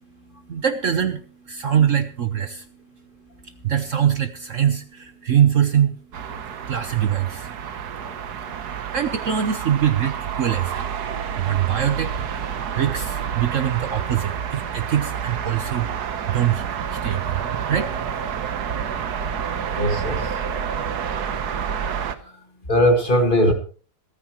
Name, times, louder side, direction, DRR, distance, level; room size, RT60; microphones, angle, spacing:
voice 1, 0.5-2.7 3.4-6.0 6.7-7.5 8.4-8.5 8.9-10.9 11.4-15.9 16.3-18.3, right 9 dB, 55° right, 1.1 m, -23 dB
sound 1, 6.1-22.2, right 7 dB, 70° right, 1.6 m, -29 dB
voice 2, 19.8-20.3 22.7-23.5, equal, 30° left, 2.1 m, -18 dB
26.5 x 9.8 x 3.1 m
omnidirectional pair, 1.8 m